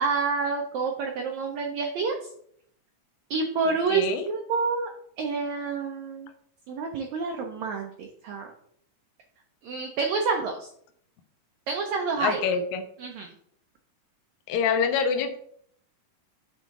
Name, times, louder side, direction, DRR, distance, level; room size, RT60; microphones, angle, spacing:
voice 1, 0.0-2.2 3.3-4.9 5.2-6.3 6.7-8.5 9.6-10.7 11.7-12.4 13.0-13.3, right 4 dB, 75° right, 2 dB, 1.7 m, -28 dB
voice 2, 3.7-4.3 12.2-12.8 14.5-15.4, left 6 dB, 75° left, 6 dB, 1.9 m, -26 dB
9.1 x 3.5 x 3.6 m, 0.65 s
omnidirectional pair, 4.0 m